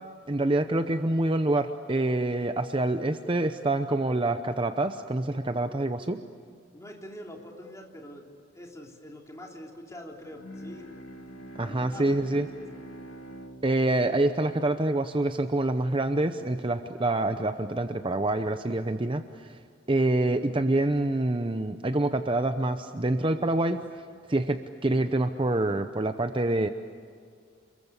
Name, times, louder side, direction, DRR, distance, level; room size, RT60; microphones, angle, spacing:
voice 1, 0.3-6.2 11.6-12.5 13.6-19.6 19.9-23.8 24.3-26.7, right 2 dB, 25° right, 8 dB, 0.8 m, -26 dB
voice 2, 6.7-10.9 11.6-12.6, equal, 15° left, 0 dB, 3.3 m, -45 dB
Bowed string instrument, 10.2-15.6, right 1 dB, 70° left, 2.8 m, -46 dB
29.0 x 22.0 x 8.2 m, 2.2 s
head